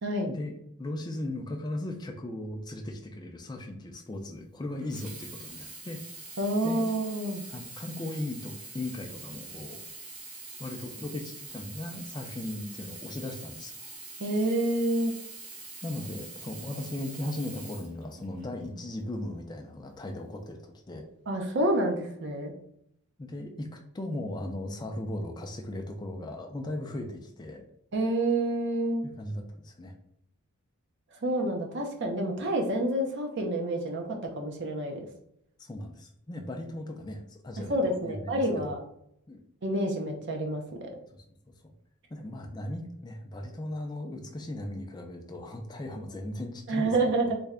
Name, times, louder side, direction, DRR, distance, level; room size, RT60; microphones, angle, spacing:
voice 1, 0.3-6.0 6.6-6.9 7.5-9.8 10.6-13.7 15.8-21.1 23.2-27.6 29.0-29.9 35.6-38.8 39.3-39.4 41.1-41.2 42.1-46.9, left 1 dB, 20° left, 3 dB, 0.3 m, -37 dB
Sink (filling or washing), 4.8-18.6 19.3-19.4, right 3 dB, 80° right, 0.9 m, -44 dB
voice 2, 6.4-7.4 14.2-15.1 21.3-22.5 27.9-29.0 31.2-34.0 34.4-35.0 37.7-38.8 39.6-40.9 46.7-47.4, right 1 dB, 50° right, 3 dB, 0.5 m, -28 dB
3.2 x 2.1 x 3.6 m, 0.74 s
head